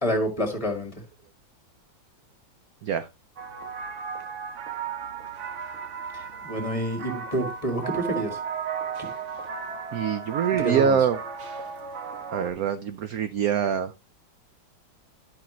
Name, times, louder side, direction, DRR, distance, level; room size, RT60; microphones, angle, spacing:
voice 1, 0.0-0.9 6.1-8.4 9.0-9.1 10.6-11.0, equal, 20° left, 4 dB, 1.9 m, -28 dB
sound 1, 3.4-12.5, right 7 dB, 45° right, 1.2 m, -35 dB
voice 2, 9.9-11.2 12.3-13.9, right 7 dB, 70° right, 11 dB, 0.9 m, -24 dB
11.5 x 5.9 x 3.0 m, 0.25 s
omnidirectional pair, 2.1 m